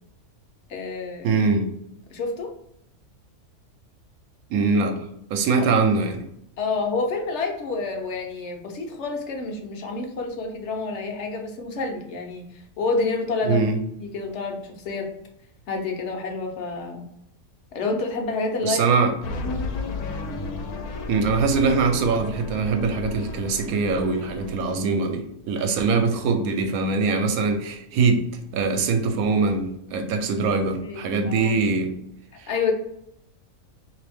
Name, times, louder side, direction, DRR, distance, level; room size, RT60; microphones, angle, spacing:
voice 1, 0.7-1.3 2.1-2.5 5.6-5.7 6.6-13.7 14.0-15.1 15.7-17.0 17.7-18.8 19.2-19.3 30.8-31.6 32.5-32.7, left 3 dB, 60° left, 3 dB, 0.9 m, -28 dB
voice 2, 1.2-1.7 4.5-6.2 13.4-13.8 18.6-19.1 21.1-28.2 28.5-31.9 32.4-32.5, right 4 dB, 80° right, 5 dB, 1.1 m, -22 dB
sound 1, 19.2-24.8, left 3 dB, 90° left, 1.1 m, -33 dB
3.3 x 2.7 x 3.4 m, 0.75 s
omnidirectional pair, 1.5 m